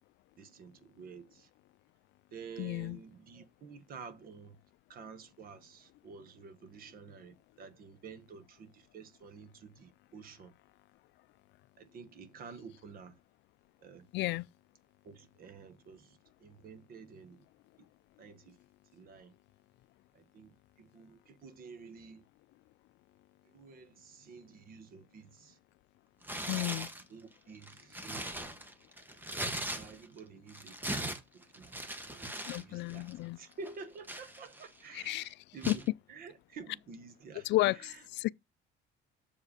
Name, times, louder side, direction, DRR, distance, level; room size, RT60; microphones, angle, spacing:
voice 1, 0.4-1.5 2.3-4.6 4.9-10.5 11.8-13.2 13.8-14.1 15.0-17.4 17.8-17.9 18.2-18.6 18.9-19.3 20.1-22.3 23.4-25.6 26.4-26.8 27.1-28.3 29.5-31.8 32.1-33.1 33.4-37.5 37.7-38.0, right 5 dB, 45° right, 1.1 m, -51 dB
voice 2, 2.6-3.0 14.1-14.5 26.5-26.9 32.5-33.4 34.9-35.3 35.7-35.8 37.4-38.3, left 19 dB, 60° left, 0.4 m, -32 dB
Tearing, 26.2-27.0 27.5-30.2 30.5-32.6 32.9-33.1 33.6-34.8 35.6-35.9, right 1 dB, 10° right, 0.9 m, -39 dB
7.0 x 4.9 x 5.0 m
cardioid pair, 145°, 20 cm